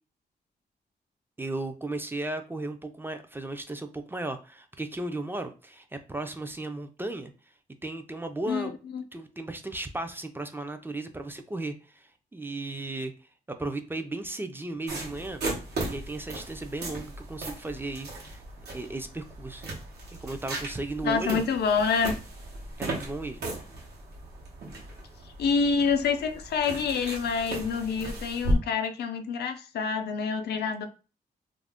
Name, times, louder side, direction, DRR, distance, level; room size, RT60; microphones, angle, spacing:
voice 1, 1.4-7.3 7.8-8.7 9.1-13.1 13.6-15.4 15.9-19.7 20.2-21.4 22.8-23.4, right 2 dB, 15° right, 0.3 m, -35 dB
voice 2, 8.5-9.0 21.0-22.1 25.4-30.9, left 5 dB, 90° left, 0.4 m, -27 dB
sound 1, 14.9-28.5, right 1 dB, 90° right, 0.9 m, -36 dB
2.4 x 2.1 x 3.4 m
cardioid pair, 105°, 16 cm